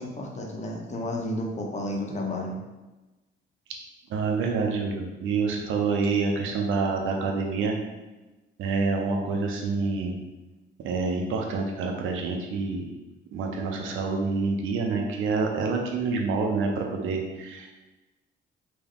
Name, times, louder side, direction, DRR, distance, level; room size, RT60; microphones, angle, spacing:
voice 1, 0.0-2.5, left 1 dB, 35° left, 0 dB, 0.9 m, -32 dB
voice 2, 4.1-7.7 8.6-10.2 10.8-12.9 13.3-17.8, right 4 dB, 85° right, 1 dB, 0.7 m, -27 dB
3.6 x 3.1 x 3.5 m, 1.1 s
cardioid pair, 90°, 20 cm